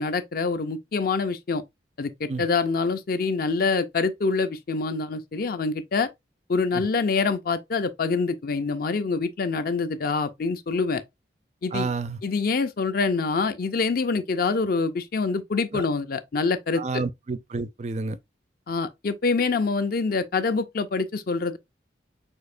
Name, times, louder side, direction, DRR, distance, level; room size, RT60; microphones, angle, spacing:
voice 1, 0.0-1.6 2.0-6.1 6.5-11.0 11.6-11.9 12.2-17.0 18.7-21.6, left 4 dB, 50° left, 0.5 m, -25 dB
voice 2, 11.7-12.2 15.7-15.8 16.8-18.2, right 4 dB, 40° right, 0.4 m, -30 dB
6.3 x 2.8 x 2.5 m
head